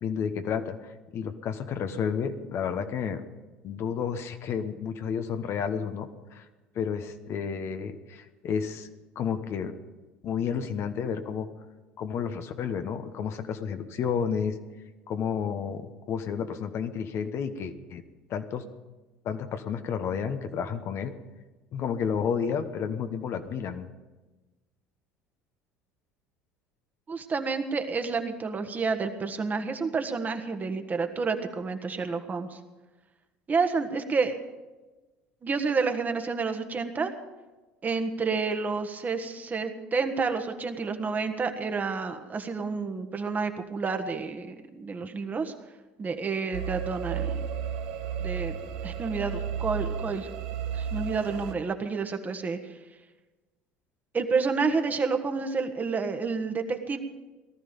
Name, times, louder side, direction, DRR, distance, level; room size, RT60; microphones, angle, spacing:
voice 1, 0.0-3.2 3.6-6.5 6.7-8.9 9.1-9.7 10.2-11.5 12.0-14.6 15.1-18.0 18.3-18.6 19.2-21.1 21.7-23.9, left 7 dB, 50° left, 8 dB, 1.2 m, -31 dB
voice 2, 27.1-32.6 33.5-34.4 35.4-37.1 37.8-45.5 46.0-47.5 48.2-50.3 50.7-52.8 54.1-57.0, right 4 dB, 30° right, 7 dB, 1.6 m, -29 dB
sound 1, 46.5-51.5, right 7 dB, 75° right, 1.2 m, -33 dB
18.5 x 13.0 x 5.3 m, 1.2 s
hypercardioid pair, 65°, 6 cm